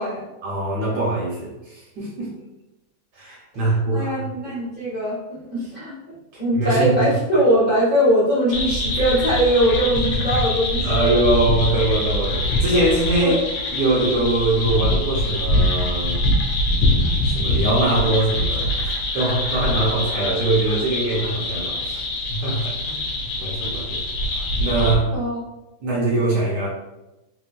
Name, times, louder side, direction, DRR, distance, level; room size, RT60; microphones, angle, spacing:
voice 1, 0.4-2.3 3.2-4.1 6.3-7.0 10.8-13.4 13.7-16.3 17.2-18.7 19.1-24.0 24.6-25.2 25.8-26.7, right 2 dB, 70° right, -3 dB, 1.1 m, -22 dB
voice 2, 3.9-11.1 13.2-13.4 25.1-25.4, equal, 35° left, -9 dB, 0.7 m, -21 dB
sound 1, 8.5-25.0, left 1 dB, 75° left, 1.2 m, -23 dB
3.0 x 3.0 x 2.2 m, 0.97 s
omnidirectional pair, 2.2 m